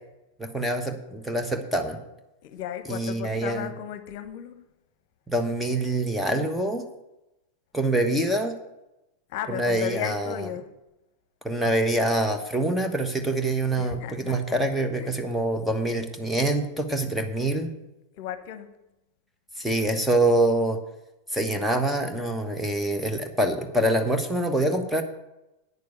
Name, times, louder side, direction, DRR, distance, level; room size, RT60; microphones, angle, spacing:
voice 1, 0.4-2.0 2.9-3.7 5.3-6.8 7.7-8.5 9.5-10.5 11.4-17.7 19.6-20.8 21.3-25.0, right 1 dB, 5° right, 1.2 m, -25 dB
voice 2, 2.4-4.6 9.3-10.7 13.8-14.3 15.0-15.1 18.2-18.7, left 10 dB, 50° left, 1.0 m, -35 dB
9.5 x 6.8 x 7.9 m
figure-of-eight pair, 90°, 0 cm